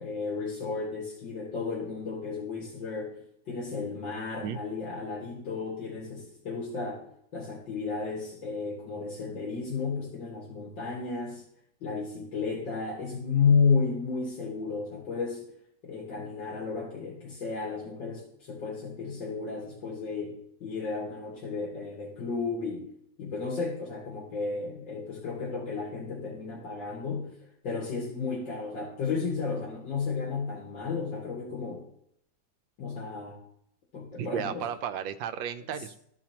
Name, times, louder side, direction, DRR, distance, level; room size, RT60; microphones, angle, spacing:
voice 1, 0.0-7.1 7.3-11.4 11.8-15.4 15.8-22.9 23.2-27.3 27.6-31.8 32.8-33.4 33.9-34.6 35.7-35.8, left 5 dB, 80° left, -4 dB, 2.4 m, -32 dB
voice 2, 34.2-36.0, right 8 dB, 80° right, 10 dB, 1.3 m, -33 dB
13.0 x 5.0 x 2.9 m, 0.72 s
omnidirectional pair, 2.0 m